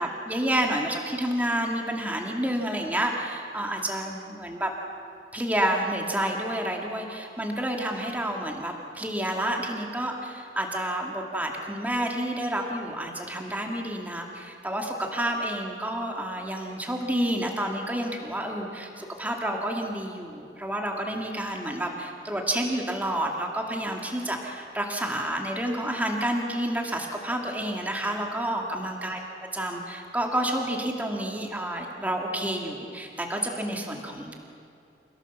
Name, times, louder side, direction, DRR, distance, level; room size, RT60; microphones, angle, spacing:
voice 1, 0.0-4.7 5.3-29.2 29.5-34.3, right 1 dB, 10° right, 1 dB, 2.2 m, -29 dB
29.5 x 17.0 x 7.2 m, 2.6 s
head